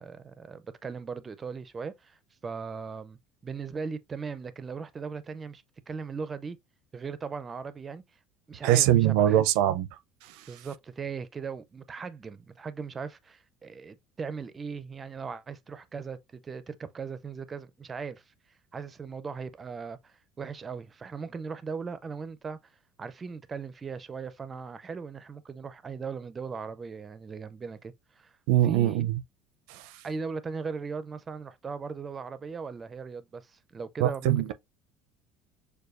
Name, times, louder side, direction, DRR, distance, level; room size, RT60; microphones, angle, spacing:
voice 1, 0.0-6.6 6.9-8.0 8.5-9.4 10.5-18.2 18.7-22.6 23.0-28.3 28.6-29.0 30.0-34.5, right 5 dB, 20° right, 0.4 m, -38 dB
voice 2, 8.6-9.9 28.5-29.2 29.7-29.8 34.0-34.5, right 12 dB, 80° right, 0.5 m, -22 dB
6.7 x 2.2 x 2.5 m
cardioid pair, 160°, 0 cm